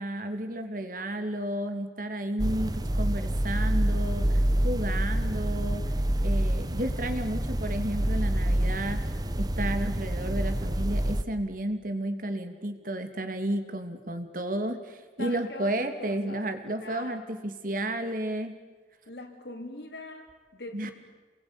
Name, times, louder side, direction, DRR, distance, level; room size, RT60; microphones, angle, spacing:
voice 1, 0.0-5.8 6.2-9.1 9.4-18.5 20.7-20.9, right 1 dB, 50° right, 8 dB, 2.8 m, -32 dB
sound 1, 2.4-11.2, right 1 dB, 20° right, 1.1 m, -27 dB
voice 2, 15.2-17.3 19.1-20.9, left 2 dB, 70° left, 4 dB, 3.9 m, -43 dB
29.0 x 22.0 x 8.9 m, 1.3 s
head